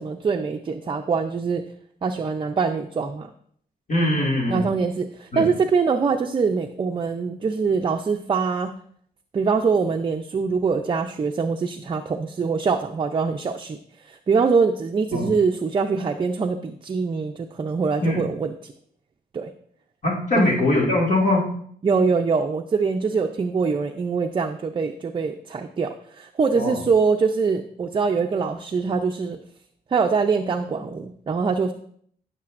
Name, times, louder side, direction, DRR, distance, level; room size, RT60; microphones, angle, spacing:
voice 1, 0.0-1.6 2.0-3.3 4.5-8.7 9.3-13.8 14.0-18.7 19.3-19.5 20.4-20.5 21.8-29.4 29.9-31.7, right 5 dB, 30° right, 5 dB, 0.5 m, -23 dB
voice 2, 3.9-4.7 5.3-5.5 15.1-15.3 18.0-18.2 20.0-21.5 26.5-26.8, left 1 dB, 50° left, -2 dB, 2.1 m, -22 dB
15.5 x 6.6 x 2.5 m, 0.63 s
wide cardioid pair, 130°, 17 cm